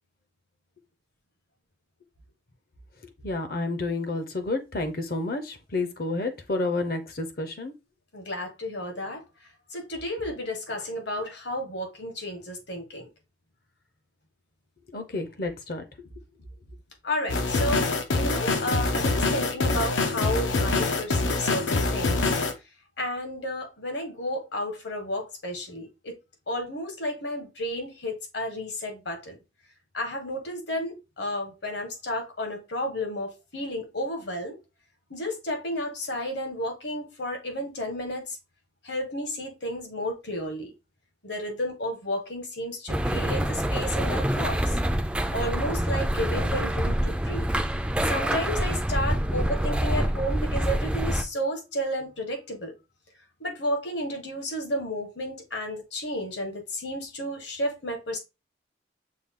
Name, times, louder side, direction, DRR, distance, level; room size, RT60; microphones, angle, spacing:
voice 1, 3.2-7.7 14.9-15.8, left 2 dB, 50° left, 0.7 m, -30 dB
voice 2, 8.1-9.2 9.7-13.1 17.0-22.2 23.0-26.2 26.5-29.4 29.9-34.6 35.1-38.4 38.8-40.7 41.2-44.8 45.3-47.5 48.0-52.7 53.4-58.2, left 1 dB, 70° left, 1.4 m, -32 dB
sound 1, 17.3-22.5, left 3 dB, 90° left, 0.8 m, -25 dB
sound 2, 42.9-51.2, right 1 dB, 5° right, 0.3 m, -26 dB
6.3 x 2.3 x 3.6 m
head